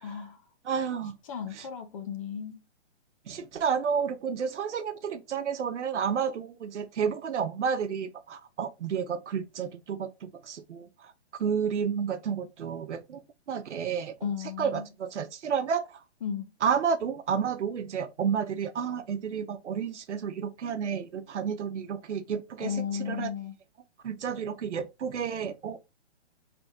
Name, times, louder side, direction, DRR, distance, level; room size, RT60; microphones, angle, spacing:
voice 1, 0.0-0.4 1.3-2.6 14.2-14.9 16.2-16.5 22.6-23.6, left 7 dB, 30° left, 0.6 m, -34 dB
voice 2, 0.6-1.1 1.6-1.7 3.3-10.9 11.4-13.2 13.5-14.3 14.6-16.0 16.6-22.7 23.1-23.3 24.0-25.8, right 7 dB, 80° right, 0.9 m, -31 dB
4.0 x 3.5 x 3.5 m
hypercardioid pair, 150°, 34 cm